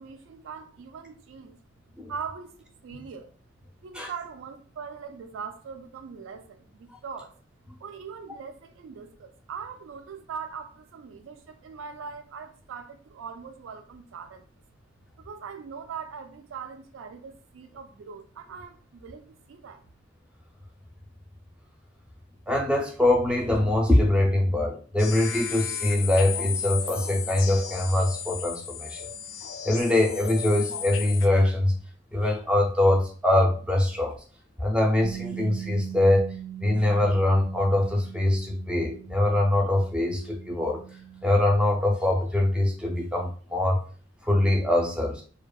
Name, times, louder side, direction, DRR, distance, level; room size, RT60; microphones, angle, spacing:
voice 1, 0.0-1.6 1.9-3.3 3.8-7.4 7.8-14.5 15.2-19.9, right 6 dB, 90° right, 0.3 m, -41 dB
voice 2, 22.5-29.1 29.6-31.7 32.1-34.1 34.6-36.2 36.6-40.8 41.2-43.8 44.2-45.2, left 1 dB, 5° right, 0.4 m, -23 dB
sound 1, 25.0-31.3, left 8 dB, 75° left, 0.4 m, -35 dB
Bass guitar, 35.0-41.3, right 10 dB, 65° right, 0.7 m, -41 dB
2.6 x 2.2 x 2.2 m
head